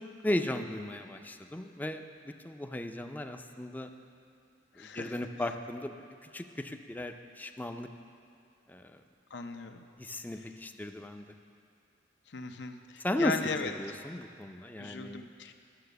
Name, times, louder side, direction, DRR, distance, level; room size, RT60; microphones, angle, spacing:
voice 1, 0.0-3.9 4.8-5.9 6.2-7.9 8.7-8.9 10.0-11.2 13.0-15.3, left 1 dB, 10° left, 6 dB, 0.4 m, -36 dB
voice 2, 4.8-5.2 9.3-9.8 12.3-13.7 14.8-15.5, left 4 dB, 80° left, 6 dB, 0.7 m, -37 dB
11.5 x 6.9 x 6.8 m, 2.4 s
head